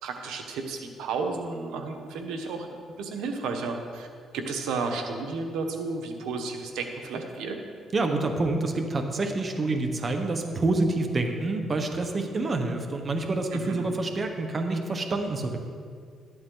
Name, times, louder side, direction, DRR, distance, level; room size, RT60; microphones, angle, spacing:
voice 1, 0.0-2.7 3.0-4.1 4.3-7.6 13.5-13.9, right 4 dB, 90° right, 4 dB, 1.1 m, -32 dB
voice 2, 7.9-15.6, right 2 dB, 35° right, 5 dB, 1.2 m, -27 dB
12.5 x 11.0 x 3.9 m, 2.1 s
cardioid pair, 90°, 0 cm